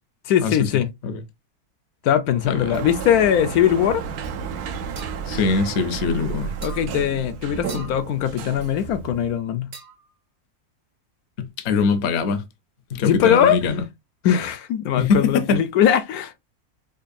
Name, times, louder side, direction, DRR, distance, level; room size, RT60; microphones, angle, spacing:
voice 1, 0.3-0.9 2.0-4.0 6.6-9.7 13.0-13.6 14.2-16.4, left 9 dB, 75° left, 1.1 m, -20 dB
Sliding door, 2.3-9.5, right 6 dB, 80° right, 1.1 m, -32 dB
sound 1, 5.0-5.2 6.6-6.9 7.7-8.0 9.7-10.1, right 2 dB, 45° right, 0.6 m, -39 dB
voice 2, 5.3-6.5 11.4-12.4 12.9-13.8 15.0-15.6, left 4 dB, 60° left, 0.8 m, -22 dB
5.2 x 2.3 x 2.5 m
omnidirectional pair, 1.6 m